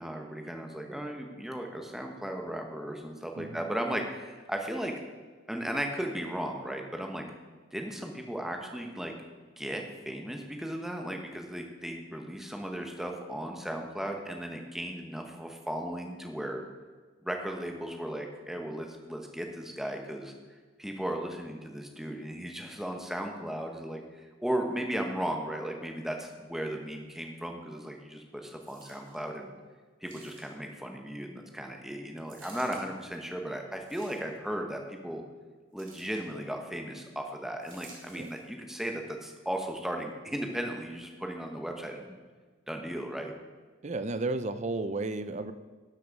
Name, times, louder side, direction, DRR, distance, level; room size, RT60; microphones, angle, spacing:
voice 1, 0.0-4.9 5.5-7.2 7.7-9.1 9.6-16.6 17.2-29.5 30.0-35.2 35.7-42.2 42.7-43.3, right 1 dB, ahead, 2 dB, 1.0 m, -36 dB
voice 2, 3.4-3.7 38.1-38.3 43.8-45.5, right 2 dB, 30° right, 12 dB, 0.4 m, -33 dB
sound 1, 28.6-29.3 30.0-30.7 32.3-32.8 33.7-34.5 35.8-36.3 37.6-38.5 39.2-39.3, right 4 dB, 60° right, 2.7 m, -53 dB
12.5 x 6.2 x 5.2 m, 1.4 s
head